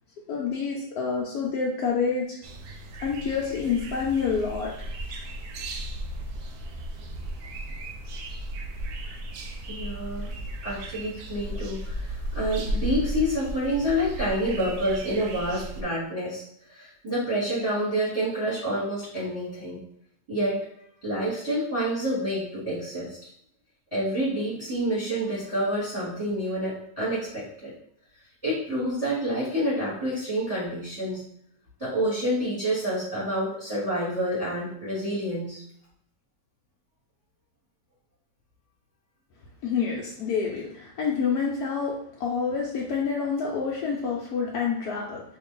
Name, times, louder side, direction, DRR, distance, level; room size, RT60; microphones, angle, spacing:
voice 1, 0.3-2.4 3.0-4.7 39.6-45.2, left 5 dB, 70° left, -2 dB, 1.0 m, -28 dB
sound 1, 2.4-15.8, right 1 dB, 70° right, 1.0 m, -35 dB
voice 2, 9.7-10.3 10.6-16.4 16.7-19.8 20.3-20.6 21.0-23.2 23.9-27.7 28.4-31.2 31.8-35.6, equal, 25° right, -8 dB, 1.2 m, -28 dB
3.1 x 2.6 x 3.7 m, 0.71 s
omnidirectional pair, 1.8 m